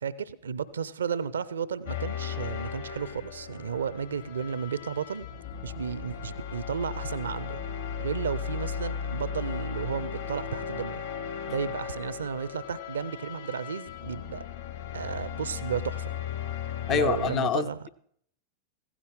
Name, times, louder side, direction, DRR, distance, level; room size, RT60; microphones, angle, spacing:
voice 1, 0.0-5.2 5.6-7.6 8.0-11.0 11.5-14.4 14.9-16.2 16.9-17.8, right 7 dB, 70° right, 0.5 m, -33 dB
sound 1, 1.8-17.4, left 8 dB, 65° left, 2.0 m, -36 dB
voice 2, 16.9-17.9, left 9 dB, 30° left, 0.5 m, -27 dB
16.0 x 15.0 x 3.7 m
figure-of-eight pair, 90°, 0 cm